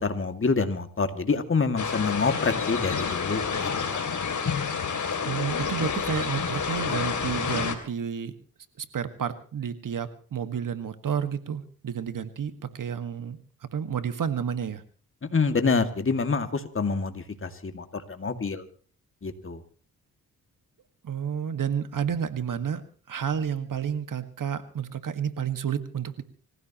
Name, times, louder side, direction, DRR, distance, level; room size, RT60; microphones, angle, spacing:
voice 1, 0.0-4.0 15.3-18.6 19.2-19.6, left 4 dB, 35° left, 7 dB, 2.3 m, -27 dB
sound 1, 1.8-7.8, left 6 dB, 55° left, 3.0 m, -29 dB
voice 2, 5.3-8.3 8.8-13.4 13.7-14.8 21.0-22.8 23.1-26.2, right 8 dB, 60° right, 10 dB, 1.8 m, -30 dB
26.5 x 15.5 x 3.0 m, 0.41 s
cardioid pair, 60°, 36 cm